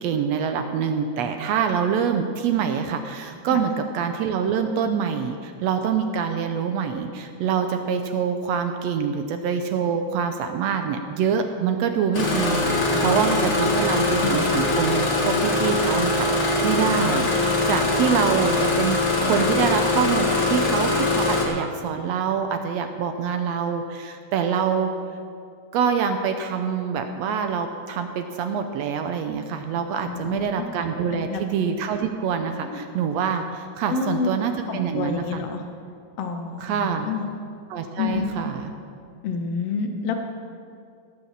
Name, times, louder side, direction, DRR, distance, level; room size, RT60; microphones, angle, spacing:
voice 1, 0.0-15.0 15.2-24.9 25.7-35.4 36.6-37.1 37.7-38.7, right 7 dB, 75° right, 7 dB, 1.6 m, -25 dB
Engine starting, 12.1-21.5, left 2 dB, 40° left, 1.0 m, -22 dB
voice 2, 12.9-13.2 13.6-14.6 30.0-30.7 31.1-31.4 32.6-32.8 33.9-35.6 36.2-37.3 38.0-38.3 39.2-40.1, left 5 dB, 65° left, 4 dB, 1.9 m, -29 dB
15.5 x 6.2 x 7.3 m, 2.3 s
omnidirectional pair, 3.4 m